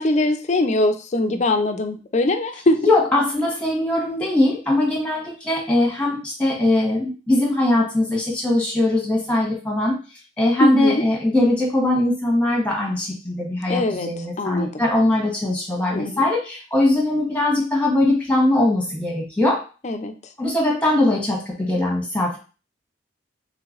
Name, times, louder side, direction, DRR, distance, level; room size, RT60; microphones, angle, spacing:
voice 1, 0.0-2.9 10.6-11.0 13.7-14.1 14.4-14.7 15.9-16.2 19.8-20.1, left 2 dB, 40° left, 7 dB, 0.5 m, -21 dB
voice 2, 2.7-10.0 10.4-19.6 20.4-22.4, left 1 dB, 5° left, -3 dB, 1.4 m, -21 dB
3.2 x 3.0 x 3.8 m, 0.34 s
head